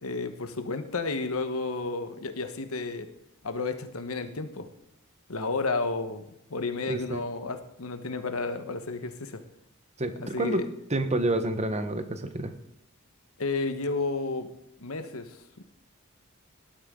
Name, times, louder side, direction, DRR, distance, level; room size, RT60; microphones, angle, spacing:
voice 1, 0.0-3.1 3.4-4.7 5.3-6.2 6.5-9.4 10.2-10.7 13.4-14.5 14.8-15.6, left 3 dB, 80° left, 8 dB, 1.2 m, -32 dB
voice 2, 6.9-7.2 10.0-10.6 10.9-12.5, right 2 dB, 30° right, 9 dB, 1.1 m, -28 dB
18.0 x 11.5 x 3.8 m, 0.78 s
head